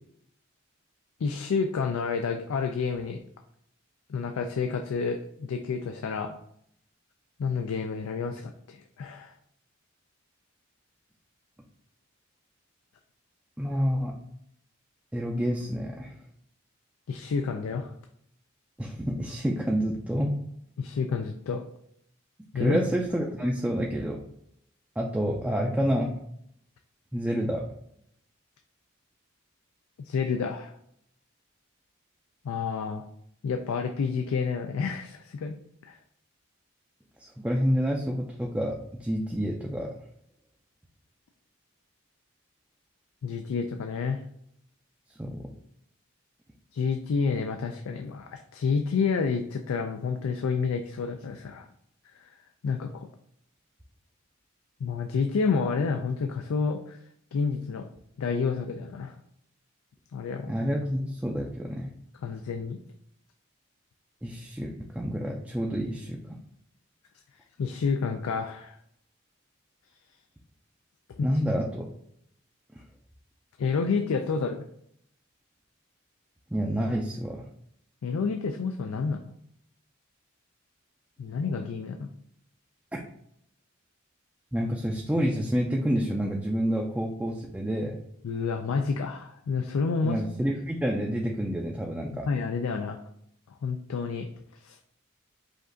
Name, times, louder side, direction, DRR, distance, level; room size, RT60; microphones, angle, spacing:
voice 1, 1.2-3.2 4.1-6.4 7.4-9.3 17.1-17.9 20.8-21.6 22.5-22.8 30.0-30.7 32.4-33.0 33.4-35.6 35.8-36.0 43.2-44.2 46.7-51.7 52.2-52.3 52.6-53.1 54.8-57.0 57.3-57.9 58.2-59.1 60.1-60.5 62.2-62.8 67.6-68.8 71.2-71.3 73.6-74.7 78.0-79.2 81.2-82.1 88.2-90.2 92.3-93.0 93.6-94.3 94.6-94.8, left 5 dB, 85° left, 5 dB, 0.4 m, -29 dB
voice 2, 13.6-14.1 15.1-16.2 18.8-20.4 22.5-24.2 25.0-26.1 27.1-27.6 37.2-39.9 45.2-45.5 60.5-61.9 64.2-66.4 71.2-71.9 76.5-77.4 82.9-83.0 84.5-88.0 90.0-92.3, equal, 5° right, -1 dB, 0.3 m, -28 dB
5.1 x 2.4 x 3.8 m, 0.71 s
head